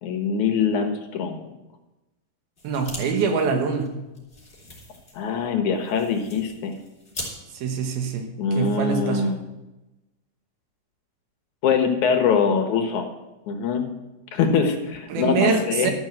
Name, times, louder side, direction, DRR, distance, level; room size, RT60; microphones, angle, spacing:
voice 1, 0.0-1.4 5.1-6.8 8.4-9.3 11.6-13.1 13.5-13.9 14.3-15.9, left 5 dB, 65° left, 5 dB, 2.2 m, -23 dB
sound 1, 2.6-3.0 3.3-3.4 3.7-7.3, left 2 dB, 15° left, 3.5 m, -40 dB
voice 2, 2.6-3.9 7.5-8.3 8.5-9.3 15.1-15.9, right 5 dB, 85° right, 5 dB, 3.3 m, -24 dB
13.0 x 6.3 x 7.6 m, 1.0 s
omnidirectional pair, 4.3 m